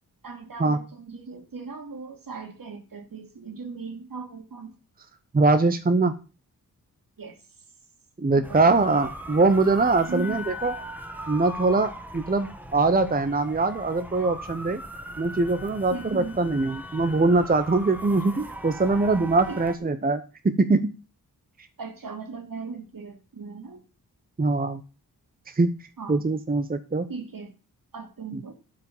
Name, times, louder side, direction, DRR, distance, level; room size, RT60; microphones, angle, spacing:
voice 1, 0.2-4.7 7.2-7.4 8.3-8.6 10.1-10.5 15.9-16.4 19.5-19.6 21.8-23.8 26.0-26.2 27.1-27.5 27.9-28.5, right 4 dB, 65° right, 2.4 m, -38 dB
voice 2, 5.3-6.1 8.2-10.7 11.3-14.8 15.2-20.9 24.4-24.8 25.5-25.7 26.1-27.1 28.3-28.4, right 3 dB, 25° right, 0.8 m, -22 dB
sound 1, 8.4-19.8, equal, 5° right, 1.4 m, -39 dB
12.0 x 5.3 x 7.0 m
wide cardioid pair, 110°, 37 cm